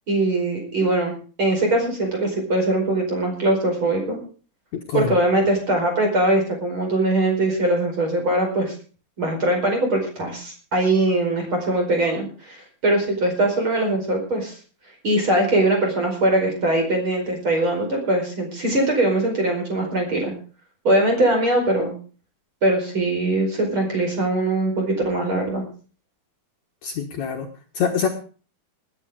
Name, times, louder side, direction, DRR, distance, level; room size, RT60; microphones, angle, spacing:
voice 1, 0.1-1.1 1.4-4.2 4.9-8.7 9.2-12.6 12.8-14.6 15.0-20.3 20.8-21.9 22.6-25.6, right 1 dB, 35° right, 2 dB, 5.5 m, -21 dB
voice 2, 4.7-5.1 26.8-27.5 27.8-28.1, left 7 dB, 60° left, 2 dB, 2.4 m, -24 dB
20.0 x 9.2 x 5.1 m, 0.39 s
omnidirectional pair, 4.1 m